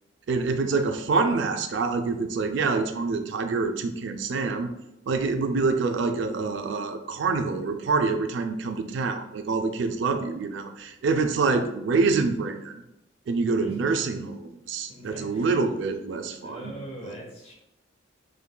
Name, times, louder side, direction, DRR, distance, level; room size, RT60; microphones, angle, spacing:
voice 1, 0.3-4.7 5.1-12.8 13.3-16.7 17.0-17.1, right 4 dB, 65° right, 7 dB, 0.4 m, -26 dB
voice 2, 13.6-13.9 14.9-15.5 16.4-17.5, right 1 dB, 30° left, -3 dB, 1.0 m, -41 dB
3.7 x 3.2 x 2.2 m, 0.87 s
head